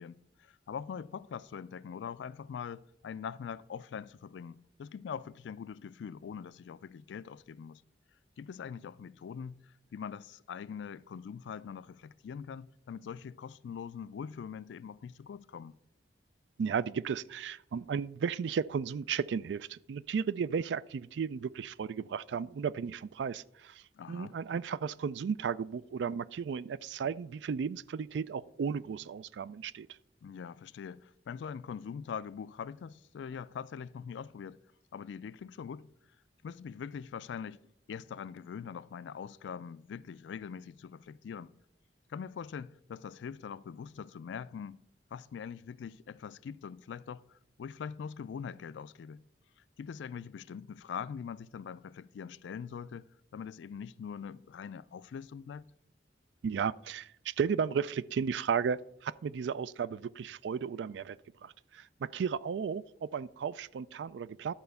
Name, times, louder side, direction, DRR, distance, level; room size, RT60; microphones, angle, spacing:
voice 1, 0.0-7.8 8.4-15.8 24.0-24.4 30.2-34.6 34.9-35.9 36.4-41.5 42.1-44.8 45.1-49.2 49.8-55.7, left 7 dB, 80° left, 0.3 m, -43 dB
voice 2, 16.6-29.9 56.4-61.2 61.4-64.5, right 6 dB, 75° right, 0.3 m, -34 dB
11.5 x 4.3 x 6.9 m
head